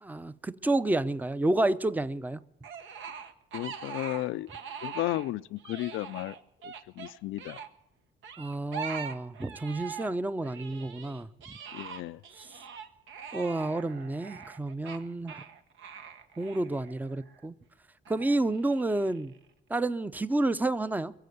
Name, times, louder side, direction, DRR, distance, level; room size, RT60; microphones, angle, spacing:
voice 1, 0.0-2.4 8.4-11.3 13.3-15.4 16.4-17.5 18.1-19.3 19.7-21.1, right 2 dB, 10° right, 0.5 m, -30 dB
sound 1, 2.6-5.3 5.6-7.7 8.2-10.2 10.4-17.4 18.0-19.4, right 7 dB, 75° right, 1.2 m, -43 dB
voice 2, 3.5-4.5 4.8-6.3 6.6-7.6 11.7-12.2, left 16 dB, 85° left, 0.4 m, -34 dB
22.0 x 7.7 x 8.0 m
cardioid pair, 90°, 20 cm